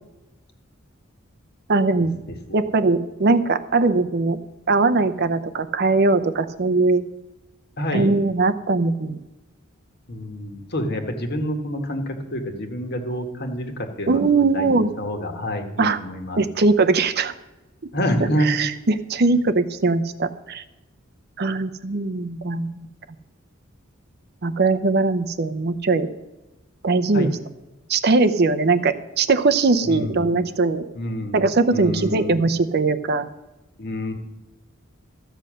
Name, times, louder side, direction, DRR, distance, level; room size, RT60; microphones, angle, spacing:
voice 1, 1.7-2.2 2.5-4.4 4.7-7.0 7.9-9.2 14.1-14.9 15.8-16.0 16.4-17.3 18.2-20.6 21.4-22.8 24.4-26.1 26.8-27.4 27.9-30.8 31.3-33.3, right 3 dB, 50° right, 11 dB, 0.6 m, -20 dB
voice 2, 7.8-8.1 10.1-16.4 17.9-18.6 27.1-27.3 29.8-30.2 30.9-31.4 31.7-32.5 33.8-34.1, equal, 50° left, 4 dB, 1.6 m, -27 dB
14.0 x 7.8 x 6.3 m, 1.0 s
head